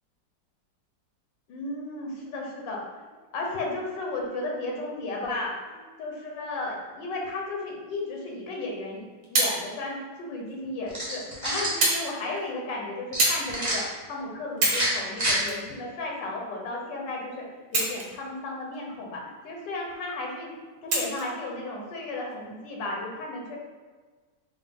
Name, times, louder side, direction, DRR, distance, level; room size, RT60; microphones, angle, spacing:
voice 1, 1.5-3.0 3.3-9.0 9.3-20.5 20.8-23.6, left 2 dB, 85° left, -1 dB, 1.4 m, -34 dB
sound 1, 8.8-9.6 10.5-10.6 11.8-12.0 12.4-12.6 13.2-13.4 14.0-14.1 14.5-14.9 15.4-16.4 17.6-18.3 18.7-18.8 20.9-21.3 22.2-22.3, right 2 dB, 90° right, 1.7 m, -26 dB
sound 2, 10.9-11.8 13.1-13.8 14.6-15.4, right 1 dB, 20° right, 0.5 m, -28 dB
4.7 x 2.1 x 3.5 m, 1.4 s
omnidirectional pair, 1.9 m